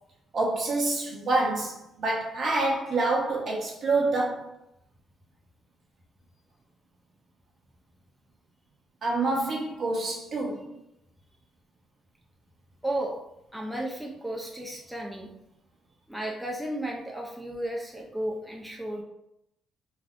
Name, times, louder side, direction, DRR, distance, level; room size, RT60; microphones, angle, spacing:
voice 1, 0.3-4.5 9.0-10.7, right 2 dB, 55° right, 1.0 m, -27 dB
voice 2, 12.8-13.2 13.5-15.3 16.1-19.0, right 1 dB, 5° right, 0.4 m, -33 dB
3.3 x 2.5 x 2.4 m
cardioid pair, 90°, 0 cm